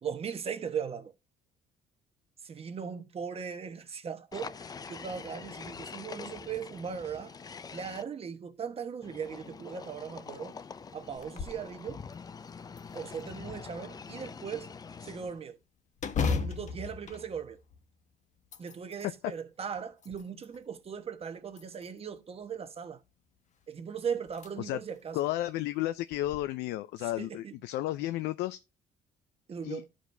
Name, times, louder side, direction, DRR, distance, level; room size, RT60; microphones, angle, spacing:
voice 1, 0.0-1.1 2.4-7.4 7.7-10.6 10.9-12.0 12.9-14.7 15.0-15.6 16.2-17.6 18.6-23.0 23.7-25.2 27.2-27.5 29.5-29.9, right 7 dB, 35° right, 1.1 m, -38 dB
sound 1, 4.3-8.0 9.0-15.4, left 5 dB, 25° left, 0.4 m, -45 dB
sound 2, 11.2-11.7 12.1-12.2 12.8-13.6 16.0-18.0 18.4-19.1 19.7-20.6 21.5-22.2 23.6-23.7 24.3-24.5 25.0-25.1 26.1-26.4, left 5 dB, 45° left, 1.0 m, -35 dB
voice 2, 25.1-28.6 29.6-29.8, left 15 dB, 85° left, 0.5 m, -32 dB
13.0 x 5.1 x 2.6 m
cardioid pair, 110°, 17 cm